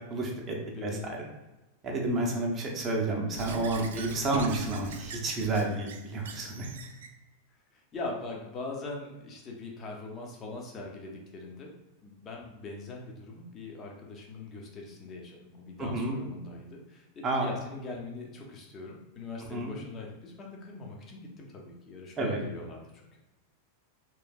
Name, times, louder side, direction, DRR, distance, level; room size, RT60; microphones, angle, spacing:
voice 1, 0.1-0.6 0.8-1.2 1.8-6.7 15.8-16.2 17.2-17.5 19.5-19.7 22.2-22.4, right 2 dB, 25° right, 0 dB, 0.7 m, -30 dB
voice 2, 0.7-1.1 3.8-4.2 4.5-4.6 5.0-5.2 6.5-6.6 7.9-11.7 12.0-23.2, left 3 dB, 25° left, 0 dB, 0.7 m, -42 dB
Squeak / Writing, 3.4-7.1, right 6 dB, 60° right, 0.3 m, -41 dB
3.2 x 3.1 x 2.3 m, 1.1 s
figure-of-eight pair, 90°, 0 cm